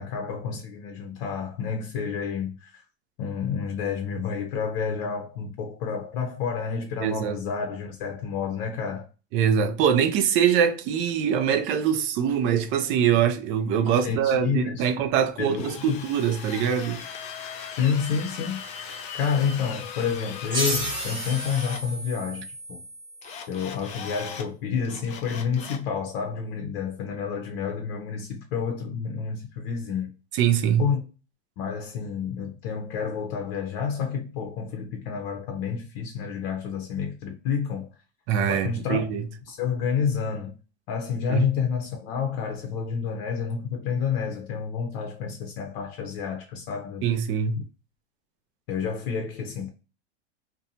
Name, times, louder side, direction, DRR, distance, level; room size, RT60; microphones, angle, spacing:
voice 1, 0.0-2.8 3.2-9.0 13.8-14.9 15.4-16.0 17.8-22.8 23.5-30.1 30.8-31.0 31.6-37.9 38.5-39.1 39.5-40.6 40.9-47.0 48.7-49.7, left 6 dB, 55° left, 0.7 m, -29 dB
voice 2, 7.0-7.4 9.3-17.0 30.3-30.9 38.3-39.2 41.3-41.4 47.0-47.6, right 8 dB, 35° right, 0.5 m, -23 dB
Drill, 15.5-21.8 23.2-24.5 24.8-25.9, left 6 dB, 20° left, 0.4 m, -39 dB
sound 1, 20.5-23.7, right 1 dB, 15° right, 0.9 m, -32 dB
2.6 x 2.2 x 2.7 m
hypercardioid pair, 115°, 33 cm